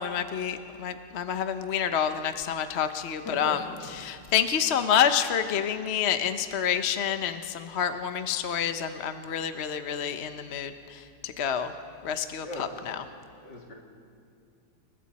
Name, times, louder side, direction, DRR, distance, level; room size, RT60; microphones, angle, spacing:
voice 1, 0.0-3.6 3.9-11.7 12.0-13.0, left 8 dB, 50° left, 8 dB, 0.9 m, -28 dB
voice 2, 3.2-3.6 12.4-12.7 13.3-13.7, left 1 dB, 70° left, -1 dB, 3.4 m, -39 dB
29.5 x 22.0 x 4.2 m, 2.4 s
omnidirectional pair, 1.9 m